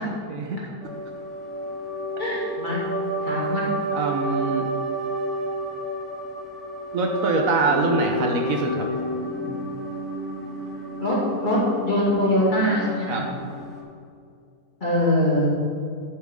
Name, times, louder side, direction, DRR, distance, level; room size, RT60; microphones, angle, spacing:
voice 1, 0.3-0.6 3.9-4.7 6.9-8.9 9.5-9.6 13.1-13.3, right 3 dB, 65° right, 2 dB, 1.2 m, -24 dB
sound 1, 0.8-13.8, equal, ahead, 1.6 m, -31 dB
voice 2, 2.2-2.8 3.2-3.7 11.0-13.3 14.8-15.5, left 1 dB, 30° left, -6 dB, 2.4 m, -22 dB
10.0 x 7.2 x 3.7 m, 2.4 s
omnidirectional pair, 1.6 m